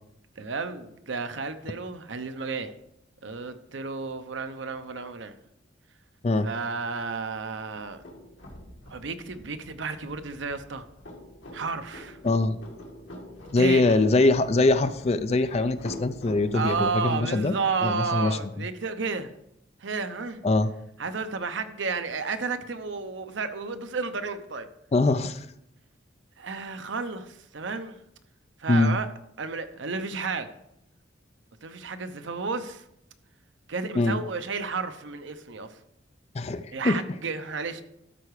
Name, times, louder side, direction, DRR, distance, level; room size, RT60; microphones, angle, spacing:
voice 1, 0.4-2.7 3.2-5.3 6.4-8.0 8.9-10.8 11.5-12.2 13.6-14.0 16.5-19.3 19.8-20.4 21.0-24.7 26.4-28.0 28.6-29.1 29.4-30.5 31.6-32.8 33.7-35.8 36.7-37.8, right 4 dB, 80° right, 10 dB, 0.7 m, -32 dB
sound 1, 7.7-16.9, left 1 dB, 85° left, 1.9 m, -45 dB
voice 2, 12.2-12.6 13.5-17.5 17.8-18.3 20.4-20.7 24.9-25.5 28.7-29.0 34.0-34.2 36.3-37.0, left 2 dB, 35° left, 12 dB, 0.4 m, -22 dB
12.5 x 4.7 x 4.8 m, 0.80 s
head